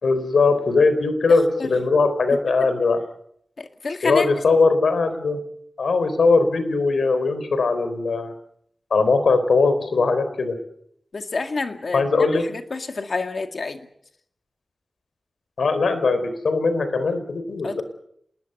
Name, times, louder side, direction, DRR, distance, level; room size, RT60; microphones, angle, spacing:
voice 1, 0.0-3.0 4.0-5.4 5.8-8.3 8.9-10.6 11.9-12.4 15.6-17.8, left 3 dB, 90° left, 10 dB, 3.7 m, -20 dB
voice 2, 3.6-4.3 11.1-13.8 17.6-17.8, left 3 dB, 55° left, 7 dB, 2.0 m, -28 dB
26.5 x 20.5 x 6.7 m, 0.70 s
wide cardioid pair, 125°, 0 cm